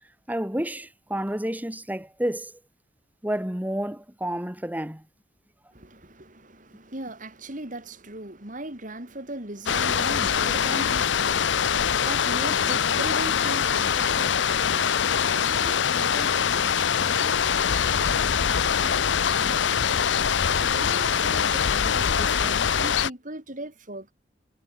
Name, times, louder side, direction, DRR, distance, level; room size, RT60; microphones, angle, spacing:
voice 1, 0.3-2.5 3.2-5.1, right 1 dB, 10° right, 2.7 m, -30 dB
voice 2, 5.7-20.1 20.5-24.1, right 1 dB, 45° right, 5.0 m, -39 dB
sound 1, 9.7-23.1, left 7 dB, 85° left, 0.7 m, -23 dB
head